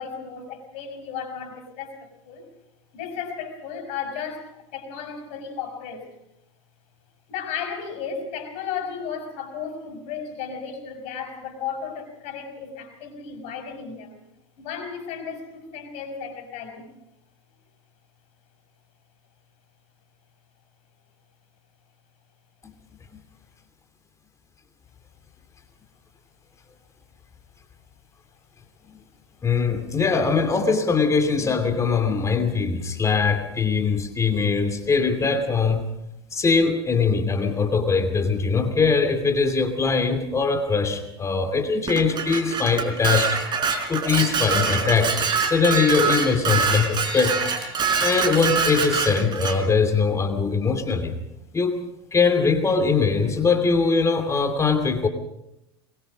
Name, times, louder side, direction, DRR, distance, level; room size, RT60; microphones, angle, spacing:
voice 1, 0.0-2.4 2.9-6.1 7.3-14.2 14.6-16.9, left 6 dB, 55° left, 7 dB, 5.6 m, -34 dB
voice 2, 29.4-35.8 36.3-43.3 43.9-45.1 45.4-47.4 48.0-51.1 51.5-51.8 52.1-55.1, left 4 dB, 25° left, 7 dB, 2.7 m, -21 dB
Dishes pots and pans, 41.9-49.6, right 5 dB, 35° right, 4.3 m, -25 dB
23.0 x 21.5 x 5.2 m, 0.84 s
hypercardioid pair, 90°, 13 cm